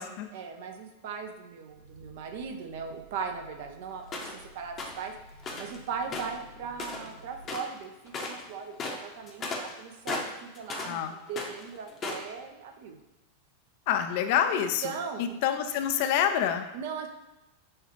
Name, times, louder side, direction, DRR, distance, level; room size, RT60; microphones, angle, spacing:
voice 1, 0.3-5.1 5.6-13.0 14.5-15.4 16.7-17.1, right 6 dB, 50° right, 5 dB, 0.5 m, -38 dB
Growling, 1.2-7.5, equal, 85° right, 1.0 m, -54 dB
sound 1, 4.1-4.4 4.8-5.0 5.4-5.8 6.1-7.2 7.4-7.8 8.1-8.4 8.7-11.0 11.3-12.3, left 3 dB, 25° left, 0.7 m, -36 dB
voice 2, 13.9-14.9 15.2-16.6, left 9 dB, 50° left, 8 dB, 0.4 m, -27 dB
6.4 x 2.4 x 3.0 m, 1.0 s
figure-of-eight pair, 90°, 0 cm